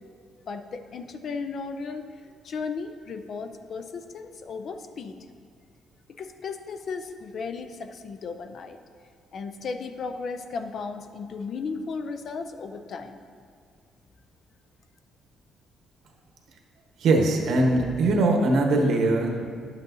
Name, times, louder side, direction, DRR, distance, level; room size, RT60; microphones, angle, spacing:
voice 1, 0.5-2.1 2.4-5.2 6.1-8.8 9.3-13.2, left 4 dB, 50° left, 8 dB, 0.5 m, -35 dB
voice 2, 17.0-19.5, right 2 dB, 70° right, 2 dB, 1.1 m, -21 dB
11.0 x 8.2 x 2.7 m, 2.2 s
cardioid pair, 135°, 0 cm